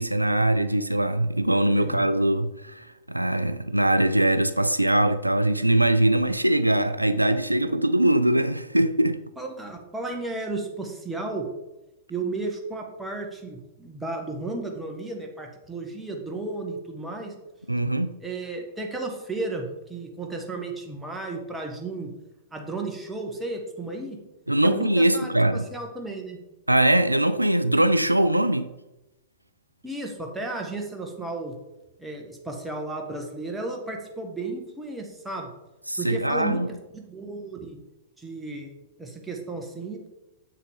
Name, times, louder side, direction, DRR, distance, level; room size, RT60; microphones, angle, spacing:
voice 1, 0.0-9.2 17.7-18.2 24.5-25.7 26.7-28.7 35.9-36.7, right 1 dB, 90° right, 0.3 m, -22 dB
voice 2, 9.4-11.5 12.1-17.3 18.2-22.1 22.5-24.2 24.6-26.4 29.8-31.5 32.0-35.5 36.0-37.8 38.2-38.7 39.0-40.1, right 2 dB, 5° right, 1.5 m, -34 dB
7.5 x 6.4 x 3.7 m
figure-of-eight pair, 100°, 0 cm